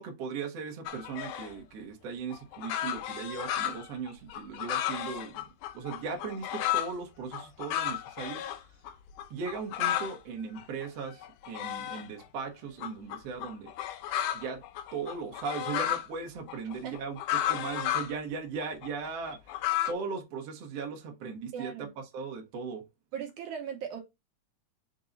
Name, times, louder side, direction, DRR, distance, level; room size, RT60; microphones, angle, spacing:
voice 1, 0.0-5.4 5.7-8.4 9.3-13.7 14.3-14.6 14.9-19.4 19.9-21.9 22.1-22.8, right 5 dB, 60° right, 2.1 m, -38 dB
sound 1, 0.9-1.6 2.3-6.9 7.3-8.6 8.8-8.9 9.2-10.2 10.6-12.3 12.8-16.1 16.5-18.1 18.6-19.9, left 12 dB, 85° left, 2.3 m, -33 dB
voice 2, 21.5-21.9 23.1-24.0, right 8 dB, 75° right, 2.4 m, -38 dB
5.4 x 4.7 x 3.9 m
omnidirectional pair, 3.6 m